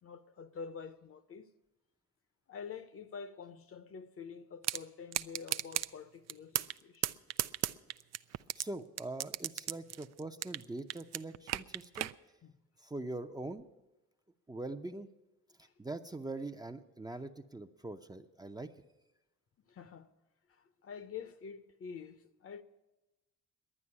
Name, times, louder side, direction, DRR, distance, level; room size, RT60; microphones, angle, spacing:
voice 1, 0.0-1.5 2.5-7.1 12.4-12.5 15.6-15.7 19.7-20.1 20.5-22.6, left 6 dB, 50° left, 0.8 m, -47 dB
sound 1, 4.6-4.8 5.1-5.9 6.3-6.8 7.0-8.6 9.0-10.6 10.9-12.1, right 12 dB, 60° right, 0.5 m, -34 dB
voice 2, 8.6-12.1 12.8-13.7 14.5-15.1 15.8-18.7, right 2 dB, 15° right, 0.6 m, -42 dB
11.0 x 9.3 x 9.8 m
cardioid pair, 90°, 30 cm